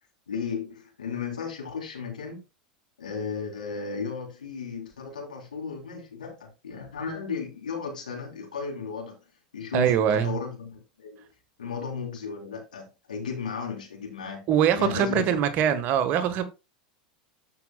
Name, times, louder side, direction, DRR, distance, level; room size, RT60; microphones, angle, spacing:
voice 1, 0.3-2.4 3.0-9.2 9.5-11.2 11.6-14.5 14.8-15.4, left 5 dB, 80° left, 3.8 m, -35 dB
voice 2, 9.7-10.3 14.5-16.4, right 8 dB, 45° right, 1.5 m, -23 dB
13.5 x 6.1 x 2.4 m
figure-of-eight pair, 85°, 4 cm